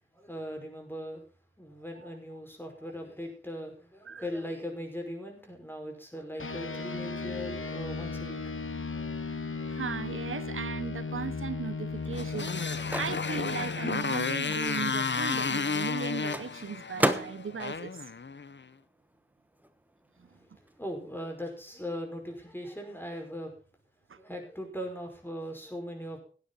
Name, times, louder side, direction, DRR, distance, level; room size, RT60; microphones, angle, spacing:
voice 1, 0.1-1.2 1.6-8.4 20.4-23.5 24.2-26.2, equal, 10° left, 5.4 m, -39 dB
sound 1, 6.4-16.1, left 4 dB, 80° left, 1.2 m, -37 dB
voice 2, 9.7-18.0 20.2-20.3 24.1-24.2, right 6 dB, 90° right, 0.6 m, -37 dB
Microwave oven, 11.1-19.2 19.5-21.4, right 1 dB, 10° right, 1.1 m, -37 dB
Motorcycle, 12.1-18.6, left 5 dB, 65° left, 0.7 m, -32 dB
17.0 x 9.8 x 4.1 m
wide cardioid pair, 55°, 20 cm